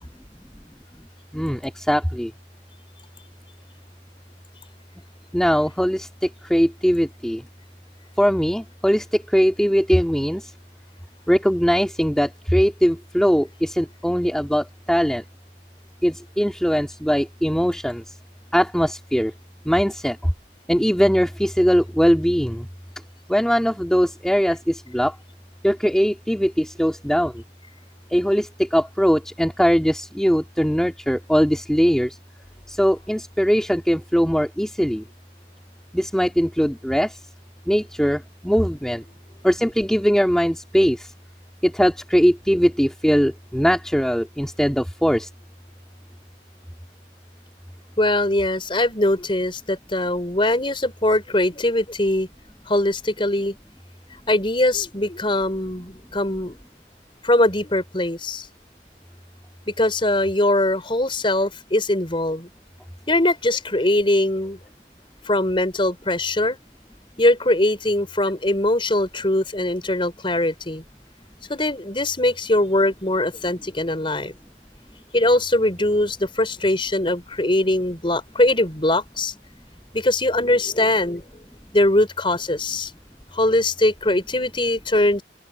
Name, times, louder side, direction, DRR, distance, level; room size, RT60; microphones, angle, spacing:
voice 1, 1.3-2.3 5.3-7.4 8.2-10.4 11.3-15.2 16.0-18.0 18.5-19.3 19.7-20.2 20.7-22.7 23.3-25.1 25.6-27.3 28.1-32.2 32.7-35.0 35.9-37.1 37.7-39.0 39.4-41.1 41.6-45.3, equal, 5° left, 2.6 m, -20 dB
voice 2, 48.0-52.3 52.7-53.5 54.3-56.6 57.2-58.5 59.7-62.5 63.1-64.6 65.2-66.6 67.2-70.8 71.5-74.4 75.1-79.3 79.9-81.2 81.7-82.9 83.3-85.2, left 1 dB, 30° left, 4.2 m, -21 dB
open air
head